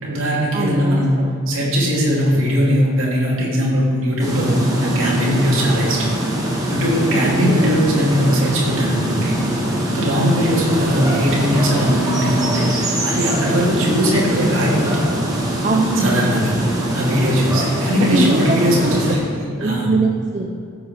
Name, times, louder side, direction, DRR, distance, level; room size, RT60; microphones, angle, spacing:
voice 1, 0.0-1.1 1.5-6.1 6.7-9.4 9.9-15.1 16.0-16.4 16.9-20.0, equal, 70° right, -5 dB, 2.6 m, -19 dB
voice 2, 0.5-1.3 7.2-7.8 15.6-16.7 18.1-19.0 19.6-20.5, right 2 dB, 35° right, 1 dB, 0.6 m, -22 dB
sound 1, 4.2-19.2, right 1 dB, 15° right, 1.6 m, -22 dB
14.5 x 7.9 x 3.6 m, 2.4 s
head